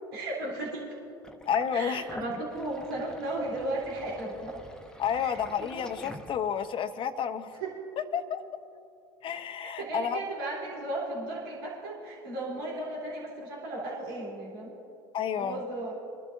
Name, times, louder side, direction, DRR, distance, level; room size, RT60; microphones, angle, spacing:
voice 1, 0.1-0.9 1.7-4.6 5.1-5.4 7.6-7.7 9.8-14.7 15.4-16.0, right 2 dB, 85° right, -4 dB, 3.2 m, -35 dB
Sink (filling or washing), 1.2-6.8, left 1 dB, 5° left, 1.0 m, -47 dB
voice 2, 1.5-2.0 5.0-7.5 8.1-8.4 9.2-10.2 15.1-15.6, left 8 dB, 45° left, 9 dB, 0.9 m, -30 dB
24.5 x 12.0 x 2.6 m, 2.7 s
hypercardioid pair, 80°, 12 cm